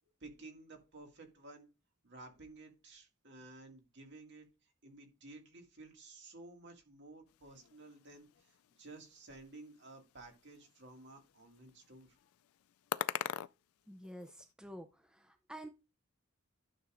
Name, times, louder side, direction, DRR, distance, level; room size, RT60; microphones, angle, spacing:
voice 1, 0.2-1.7 2.0-12.2, right 2 dB, 55° right, 3 dB, 2.2 m, -54 dB
sound 1, 7.3-14.5, left 10 dB, 80° left, 0.3 m, -45 dB
voice 2, 13.9-15.7, equal, 5° right, 6 dB, 0.5 m, -49 dB
12.0 x 7.0 x 2.6 m, 0.28 s
head